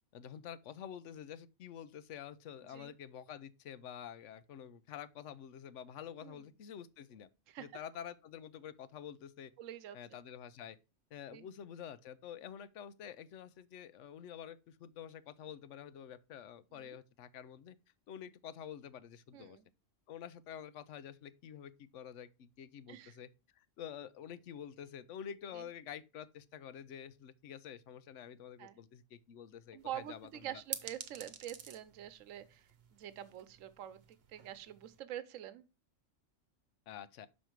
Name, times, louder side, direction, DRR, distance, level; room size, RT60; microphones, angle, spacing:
voice 1, 0.1-7.3 7.6-9.5 9.9-10.8 11.1-17.8 18.1-19.6 20.1-23.3 23.6-30.6 36.9-37.3, left 9 dB, 70° left, 1.0 m, -48 dB
voice 2, 7.5-7.8 9.6-10.2 11.3-11.4 16.7-17.0 19.3-19.6 22.9-23.2 25.5-25.7 28.6-28.8 29.7-35.7, right 11 dB, 80° right, 1.0 m, -46 dB
sound 1, 29.8-35.0, right 7 dB, 55° right, 1.0 m, -50 dB
6.4 x 5.3 x 4.5 m
omnidirectional pair, 1.3 m